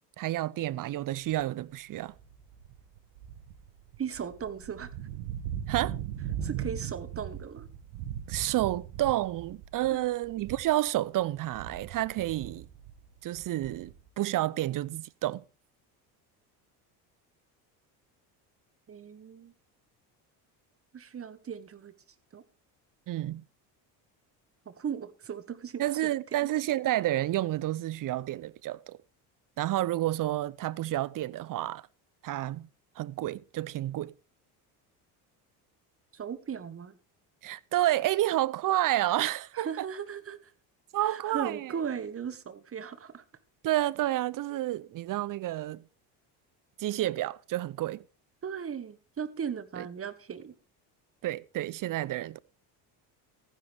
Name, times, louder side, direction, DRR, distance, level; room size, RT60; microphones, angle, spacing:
voice 1, 0.2-2.1 5.7-6.0 8.3-12.7 13.2-15.4 23.1-23.4 25.8-29.0 29.6-31.8 32.2-32.7 33.0-34.1 37.4-39.9 40.9-41.7 43.6-45.8 46.8-48.0 49.8-49.9 51.2-52.4, right 14 dB, 45° right, 0.7 m, -30 dB
sound 1, 1.3-1.6 2.1-10.9 11.2-14.1, right 10 dB, 75° right, 1.2 m, -39 dB
voice 2, 4.0-4.9 6.4-7.7 9.9-10.1 18.9-19.5 20.9-21.9 22.3-22.4 24.6-26.1 26.4-26.5 36.1-36.9 39.5-40.5 41.0-43.2 48.4-50.5, right 7 dB, 30° right, 1.4 m, -37 dB
15.0 x 10.0 x 3.5 m
supercardioid pair, 90°, 45 cm